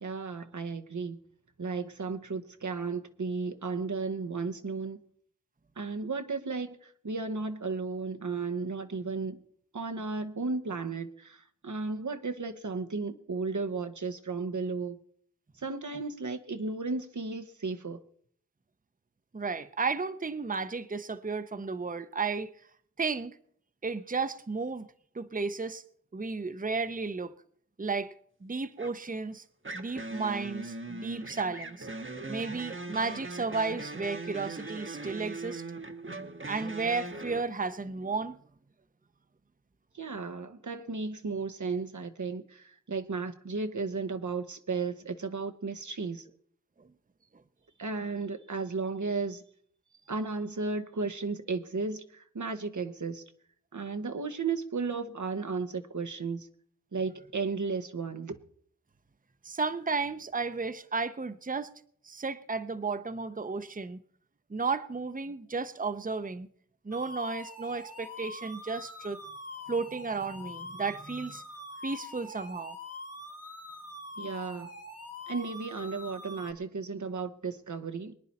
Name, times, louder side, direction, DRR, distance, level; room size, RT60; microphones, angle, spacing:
voice 1, 0.0-1.2 1.6-5.0 5.8-9.4 9.7-15.0 15.6-18.0 39.9-46.2 47.8-49.4 50.1-53.2 53.7-56.5 56.9-58.4 74.2-74.7 75.3-78.1, right 4 dB, 85° right, 1.0 m, -34 dB
voice 2, 19.3-22.5 23.0-23.4 23.8-24.9 25.1-25.8 26.1-27.3 27.8-28.1 28.4-29.4 29.7-31.9 32.3-35.6 36.5-38.4 59.4-61.7 62.0-64.0 64.5-66.5 66.8-69.2 69.7-71.4 71.8-72.8, right 4 dB, 30° right, 0.7 m, -33 dB
sound 1, 28.8-29.1 29.6-37.4, right 2 dB, 45° right, 1.0 m, -40 dB
sound 2, 66.9-76.5, left 2 dB, 55° left, 1.6 m, -44 dB
23.0 x 9.9 x 4.2 m
wide cardioid pair, 45°, 29 cm